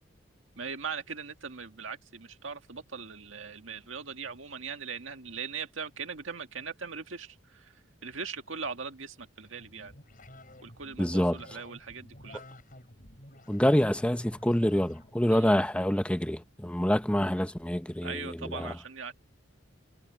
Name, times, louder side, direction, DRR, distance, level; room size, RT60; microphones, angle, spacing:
voice 1, 0.6-7.7 8.0-9.9 10.6-12.4 15.3-15.5 18.0-19.1, right 5 dB, 80° right, 1.9 m, -40 dB
sound 1, 9.4-15.8, left 1 dB, 45° left, 7.6 m, -52 dB
voice 2, 11.0-11.4 13.5-18.7, equal, 5° left, 0.8 m, -26 dB
head